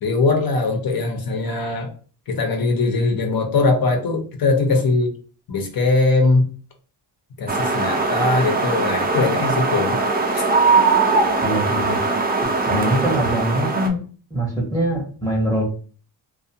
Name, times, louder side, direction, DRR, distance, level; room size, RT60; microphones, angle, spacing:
voice 1, 0.0-1.9 2.3-5.1 5.5-6.5 7.4-10.0 10.3-10.4 12.4-12.5, left 3 dB, 60° left, 3 dB, 0.8 m, -20 dB
sound 1, 7.5-13.9, right 3 dB, 25° right, 0.4 m, -20 dB
voice 2, 11.4-12.0 12.7-14.0 14.3-15.7, right 1 dB, 10° left, -2 dB, 0.8 m, -23 dB
2.5 x 2.3 x 2.7 m, 0.41 s
wide cardioid pair, 125°, 41 cm